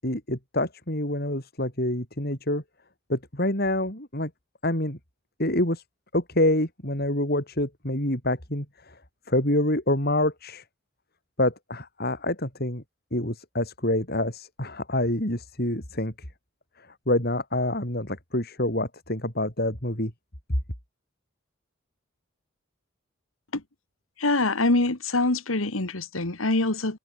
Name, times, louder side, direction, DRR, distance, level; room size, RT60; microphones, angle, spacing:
voice 1, 0.0-2.6 3.1-4.3 4.6-5.0 5.4-5.8 6.1-9.0 9.3-10.6 11.4-12.8 13.1-16.1 17.1-20.1, left 1 dB, 50° left, 7.2 m, -26 dB
voice 2, 24.2-27.0, left 2 dB, 90° left, 2.1 m, -24 dB
head